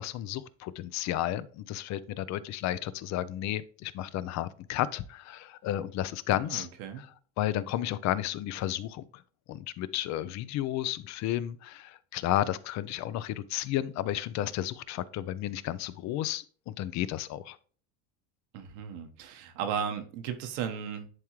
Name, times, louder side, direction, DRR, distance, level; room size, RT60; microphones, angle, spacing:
voice 1, 0.0-6.7 7.0-7.1 7.4-9.2 9.5-17.6, left 13 dB, 50° left, 0.5 m, -32 dB
voice 2, 6.4-7.0 18.5-21.1, right 7 dB, 80° right, 1.2 m, -35 dB
10.5 x 3.6 x 3.0 m
supercardioid pair, 125°, 36 cm